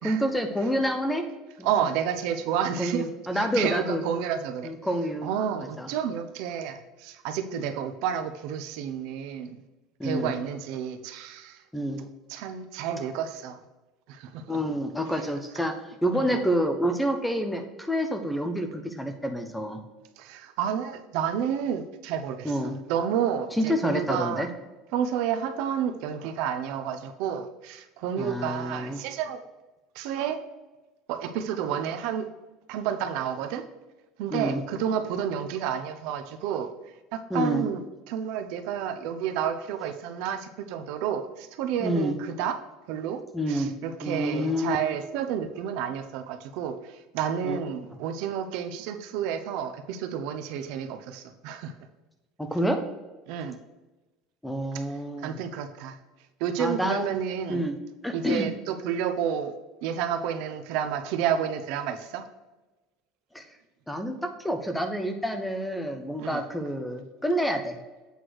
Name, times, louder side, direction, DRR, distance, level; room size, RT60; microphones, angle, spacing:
voice 1, 0.0-1.3 1.6-1.7 2.8-4.0 4.6-5.3 5.6-5.9 7.5-7.7 10.0-10.3 11.7-12.0 14.5-15.7 16.0-19.8 22.4-22.8 23.6-24.5 28.2-29.0 34.3-34.6 37.3-37.6 41.8-42.2 43.3-43.7 44.0-44.8 47.4-47.6 52.4-52.8 54.4-55.4 56.6-57.1 57.5-57.7 58.0-58.5 63.3-63.4 63.9-67.8, equal, 5° left, 6 dB, 0.5 m, -28 dB
voice 2, 1.6-3.1 3.3-4.7 5.2-9.6 10.0-11.6 12.3-13.6 14.1-14.6 16.1-16.4 20.2-22.5 22.9-24.5 24.9-29.4 29.9-30.4 31.1-32.3 32.7-33.6 34.2-36.7 37.1-37.8 38.1-42.6 42.9-43.2 43.5-51.7 53.3-53.6 55.2-56.0 56.4-57.7 58.1-59.5 59.8-62.2 66.2-66.4, right 8 dB, 55° right, 8 dB, 0.6 m, -30 dB
8.1 x 3.2 x 6.0 m, 1.1 s
cardioid pair, 180°, 0 cm